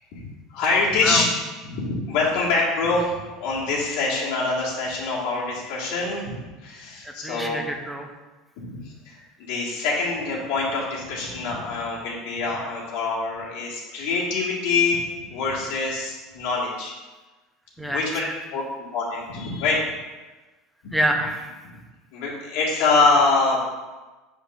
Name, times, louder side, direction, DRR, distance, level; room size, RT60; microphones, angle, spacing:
voice 1, 0.5-1.2 1.6-7.6 8.6-15.0 15.3-16.9 17.8-18.6 18.9-19.8 20.8-20.9 21.6-21.8 22.1-23.7, left 3 dB, 60° left, -5 dB, 1.9 m, -25 dB
voice 2, 7.0-8.1 17.8-18.3 20.9-21.5, equal, ahead, 3 dB, 0.5 m, -27 dB
7.4 x 5.0 x 2.6 m, 1.2 s
cardioid pair, 165°, 0 cm